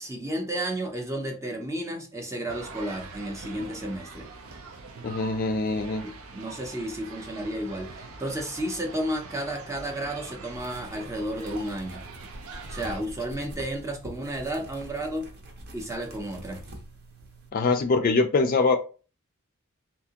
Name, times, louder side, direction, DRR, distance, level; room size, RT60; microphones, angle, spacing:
voice 1, 0.0-4.3 6.0-12.1 12.7-15.3 15.7-16.7, right 1 dB, 15° right, 0.5 m, -32 dB
sound 1, 2.5-13.0, right 4 dB, 85° right, 0.6 m, -43 dB
voice 2, 5.0-6.0 17.5-18.8, left 3 dB, 40° left, 0.4 m, -23 dB
sound 2, 10.5-17.5, right 1 dB, 50° right, 0.7 m, -44 dB
3.3 x 2.7 x 2.8 m
head